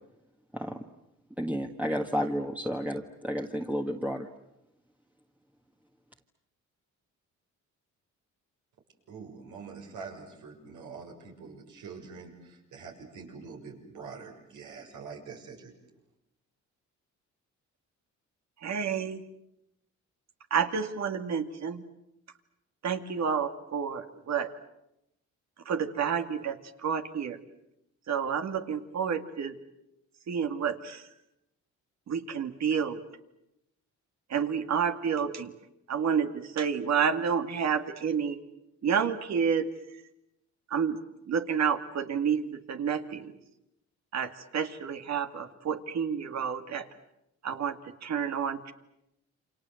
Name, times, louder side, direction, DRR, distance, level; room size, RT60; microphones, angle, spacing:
voice 1, 1.4-4.3, equal, 5° right, 2 dB, 1.7 m, -31 dB
voice 2, 9.1-15.7, right 5 dB, 80° right, 2 dB, 6.9 m, -45 dB
voice 3, 18.6-19.2 20.5-21.8 22.8-24.5 25.7-27.4 28.1-29.6 30.3-31.1 32.1-33.0 34.3-35.5 35.9-38.4 38.8-39.7 40.7-41.0 41.3-43.3 44.1-46.9 47.4-48.7, right 7 dB, 60° right, 7 dB, 2.3 m, -29 dB
29.0 x 26.0 x 7.9 m, 0.86 s
cardioid pair, 90°, 30 cm